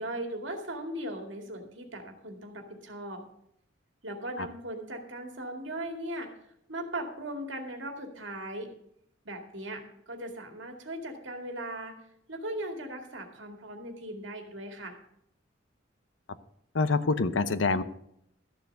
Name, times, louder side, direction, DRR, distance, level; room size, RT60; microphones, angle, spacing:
voice 1, 0.0-3.2 4.0-6.3 6.7-8.7 9.2-12.0 12.3-15.0, right 1 dB, 75° right, 4 dB, 2.3 m, -38 dB
voice 2, 16.7-17.8, left 3 dB, 80° left, 14 dB, 0.8 m, -25 dB
13.5 x 7.0 x 6.6 m, 0.74 s
head